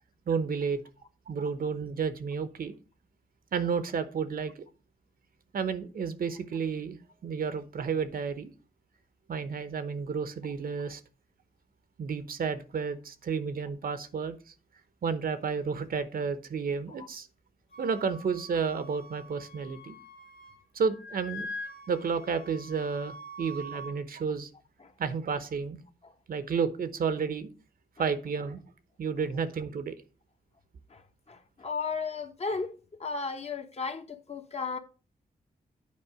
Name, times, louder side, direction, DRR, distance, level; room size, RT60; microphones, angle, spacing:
voice 1, 0.3-0.8 1.3-2.8 3.5-4.6 5.5-7.0 7.2-8.5 9.3-11.0 12.0-14.5 15.0-17.3 17.8-20.0 20.7-21.5 21.9-24.5 25.0-25.8 26.3-27.5 28.0-28.6 29.0-29.9, right 5 dB, 70° right, 1.0 m, -31 dB
Wind instrument woodwind instrument, 17.7-20.6 20.9-24.0, left 1 dB, 75° left, 1.4 m, -44 dB
voice 2, 30.9-32.7 33.0-34.8, left 4 dB, 45° left, 1.1 m, -35 dB
8.6 x 4.9 x 4.8 m
wide cardioid pair, 100°, 16 cm